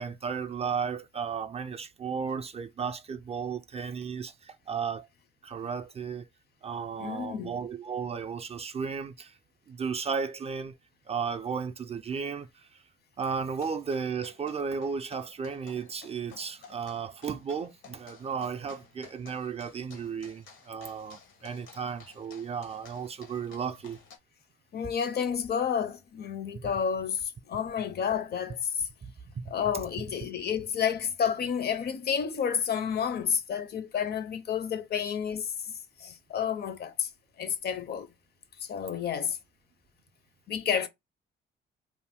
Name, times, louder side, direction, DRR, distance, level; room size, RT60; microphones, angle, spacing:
voice 1, 0.0-5.1 5.4-6.3 6.6-9.4 9.7-10.8 11.1-12.8 13.2-24.0 26.5-26.6 29.0-29.5, right 6 dB, 30° right, 0.3 m, -34 dB
voice 2, 7.0-7.6 24.7-28.9 29.5-35.7 36.0-37.1 37.4-38.1 38.6-39.4 40.5-40.9, left 7 dB, 55° left, 0.5 m, -30 dB
sound 1, 13.4-24.2, left 6 dB, 80° left, 0.8 m, -54 dB
2.5 x 2.1 x 3.4 m
cardioid pair, 90°, 20 cm